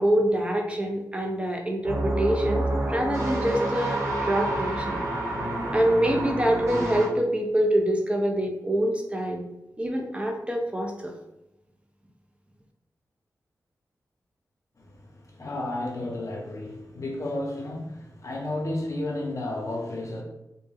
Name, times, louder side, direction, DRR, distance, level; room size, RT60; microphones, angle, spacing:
voice 1, 0.0-5.0 5.7-9.4 9.8-11.1, right 1 dB, 15° right, 1 dB, 0.6 m, -25 dB
sound 1, 1.8-7.1, right 1 dB, 45° right, 0.9 m, -28 dB
voice 2, 14.8-20.2, left 1 dB, 55° left, -1 dB, 0.7 m, -32 dB
2.1 x 2.1 x 3.2 m, 0.90 s
cardioid pair, 60°, 7 cm